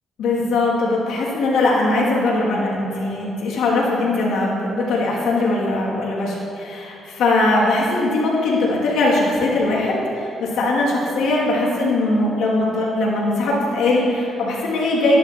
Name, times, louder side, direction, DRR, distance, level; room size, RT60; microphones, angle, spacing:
voice 1, 0.2-15.2, left 2 dB, 80° left, -5 dB, 2.4 m, -20 dB
11.5 x 11.0 x 2.9 m, 2.6 s
cardioid pair, 90°, 0 cm